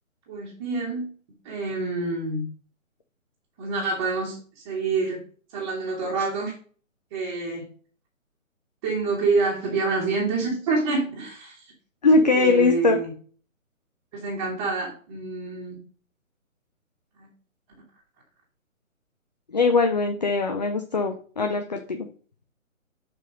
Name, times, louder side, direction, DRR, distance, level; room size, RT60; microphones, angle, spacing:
voice 1, 0.3-1.0 1.4-2.4 3.6-5.2 5.5-6.5 7.1-7.6 8.8-11.6 12.1-13.1 14.1-15.8 17.2-17.3, right 3 dB, 20° right, -4 dB, 2.0 m, -27 dB
voice 2, 12.0-13.0 19.5-22.1, left 3 dB, 35° left, 5 dB, 0.5 m, -21 dB
5.9 x 4.5 x 5.1 m, 0.42 s
figure-of-eight pair, 140°, 41 cm